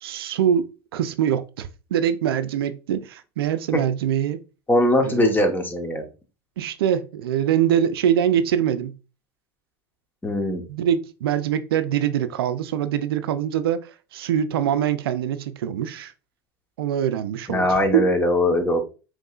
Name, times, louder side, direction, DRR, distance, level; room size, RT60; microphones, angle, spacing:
voice 1, 0.0-4.4 5.0-5.4 6.6-9.0 10.7-16.1 16.8-18.1, right 9 dB, 80° right, 0.4 m, -24 dB
voice 2, 4.7-6.1 10.2-10.6 17.5-18.8, left 1 dB, 15° left, 1.2 m, -21 dB
5.3 x 3.1 x 2.4 m
hypercardioid pair, 90°, 12 cm